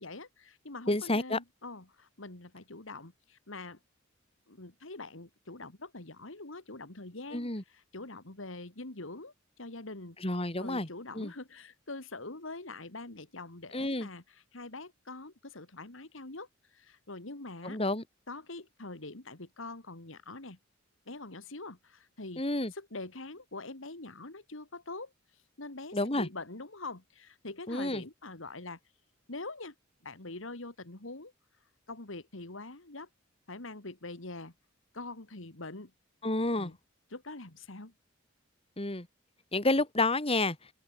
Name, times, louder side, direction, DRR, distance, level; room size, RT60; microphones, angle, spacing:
voice 1, 0.0-3.8 4.5-10.2 10.6-17.8 18.3-20.6 21.1-22.4 22.7-25.1 25.6-28.8 29.3-29.7 30.0-31.3 31.9-33.1 33.5-34.5 34.9-35.9 36.5-36.8 37.1-37.9, left 2 dB, 70° left, 2.4 m, -44 dB
voice 2, 0.9-1.4 7.3-7.6 10.2-10.9 11.1-11.3 13.7-14.1 17.6-18.0 22.4-22.7 25.9-26.3 27.7-28.0 36.2-36.7 38.8-39.1 39.5-40.6, left 2 dB, 30° left, 2.9 m, -29 dB
open air
head